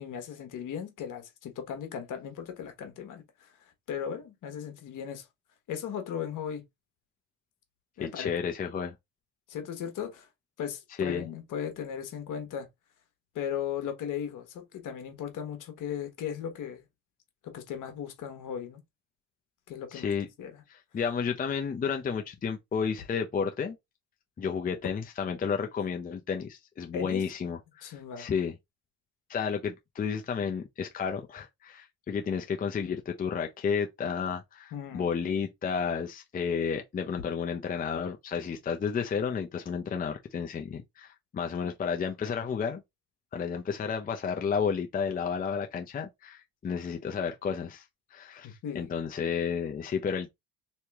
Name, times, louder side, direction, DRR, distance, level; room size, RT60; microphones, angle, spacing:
voice 1, 0.0-3.5 3.9-5.3 5.7-6.6 8.0-8.3 9.5-10.3 10.6-12.7 13.3-16.8 17.4-18.8 19.7-20.1 20.4-20.6 26.9-27.2 27.8-28.3 34.7-35.1 48.4-48.9, left 8 dB, 55° left, 1.3 m, -37 dB
voice 2, 8.0-8.9 11.0-11.2 19.9-20.3 20.7-23.8 24.4-28.5 29.3-41.1 41.3-42.8 43.3-47.8 48.1-50.3, left 6 dB, 25° left, 0.6 m, -32 dB
3.0 x 2.9 x 3.5 m
supercardioid pair, 90°, 37 cm